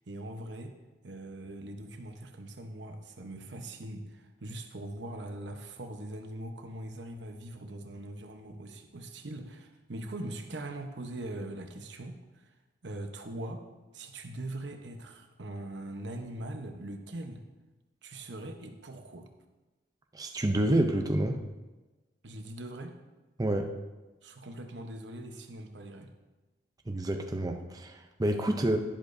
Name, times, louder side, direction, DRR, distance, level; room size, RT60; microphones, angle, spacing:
voice 1, 0.1-0.8 1.0-12.4 12.8-13.6 13.9-17.4 18.0-19.3 22.2-23.0 24.2-26.1, right 1 dB, 85° right, 5 dB, 1.0 m, -41 dB
voice 2, 20.1-21.4 23.4-23.7 26.9-28.8, right 1 dB, 20° right, 4 dB, 0.6 m, -28 dB
11.5 x 10.5 x 2.7 m, 1.2 s
head